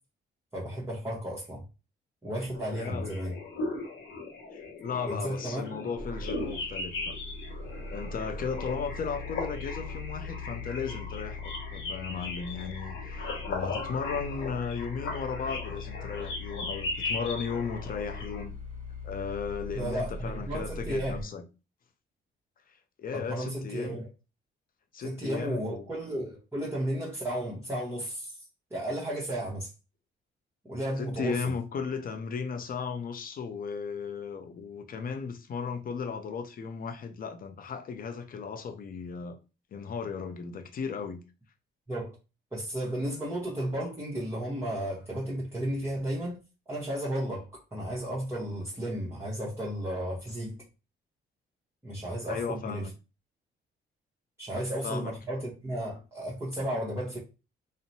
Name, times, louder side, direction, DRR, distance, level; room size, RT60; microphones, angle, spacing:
voice 1, 0.5-1.6 2.2-3.4 5.1-5.9 19.7-21.2 23.1-24.1 25.0-28.4 28.7-29.7 30.6-31.5 41.9-42.1 42.5-46.4 46.7-50.6 51.8-52.9 54.4-57.2, right 1 dB, 10° right, 0.9 m, -33 dB
sound 1, 2.5-18.4, left 3 dB, 75° left, 1.1 m, -38 dB
voice 2, 2.7-3.1 4.5-7.2 7.9-18.5 19.0-21.4 22.7-24.0 24.9-25.8 31.0-39.4 39.7-41.2 52.3-52.9 54.5-55.1, left 5 dB, 45° left, 0.5 m, -36 dB
sound 2, 6.0-21.2, left 3 dB, 40° right, 1.2 m, -41 dB
2.7 x 2.1 x 2.7 m
cardioid pair, 90°, 20 cm